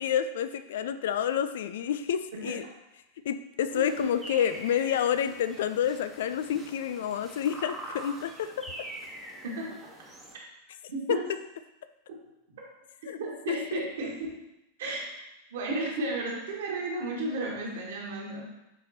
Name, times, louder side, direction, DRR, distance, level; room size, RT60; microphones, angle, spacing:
voice 1, 0.0-2.6 3.2-8.7 11.1-11.2 13.1-13.2 13.5-13.6, left 9 dB, 60° left, 11 dB, 0.3 m, -29 dB
voice 2, 2.3-2.7 3.7-4.1 9.4-9.8 10.9-11.2 13.2-14.3 14.8-15.0 15.5-18.4, right 2 dB, 60° right, -2 dB, 1.6 m, -33 dB
sound 1, 3.7-10.3, right 2 dB, 5° right, 1.2 m, -44 dB
7.9 x 4.4 x 2.8 m, 0.92 s
figure-of-eight pair, 90°, 0 cm